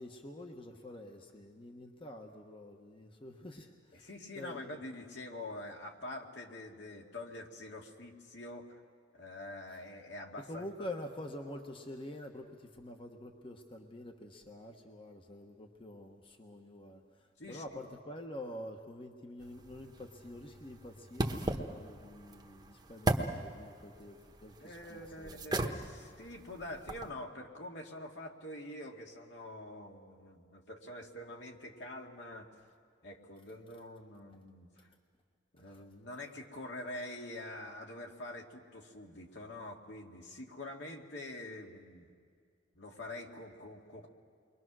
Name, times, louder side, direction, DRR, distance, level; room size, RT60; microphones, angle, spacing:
voice 1, 0.0-4.1 4.4-4.8 10.4-25.5 35.6-35.9, left 1 dB, 30° left, 3 dB, 1.2 m, -47 dB
voice 2, 3.9-8.8 9.1-10.6 17.4-17.8 24.6-32.5 33.0-34.9 35.5-42.1 42.7-44.1, left 1 dB, 70° left, 1 dB, 2.3 m, -46 dB
sound 1, 19.4-27.1, right 1 dB, 25° right, 1.2 m, -38 dB
29.0 x 23.0 x 6.2 m, 2.2 s
head